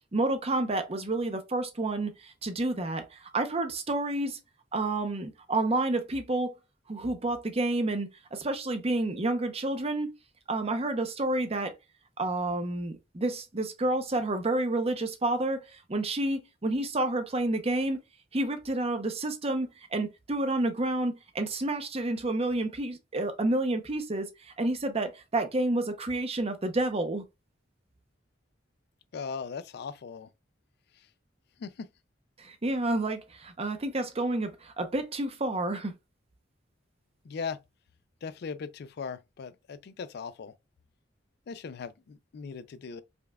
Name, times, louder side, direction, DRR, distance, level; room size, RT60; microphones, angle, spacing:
voice 1, 0.1-4.4 4.7-6.5 6.9-10.1 10.5-11.7 12.2-18.0 18.3-27.2 32.4-35.9, right 2 dB, 35° right, 0.7 m, -29 dB
voice 2, 29.1-30.3 31.6-31.9 37.2-37.6 38.2-40.5 41.5-43.0, left 5 dB, 60° left, 0.4 m, -38 dB
5.1 x 2.3 x 2.2 m
head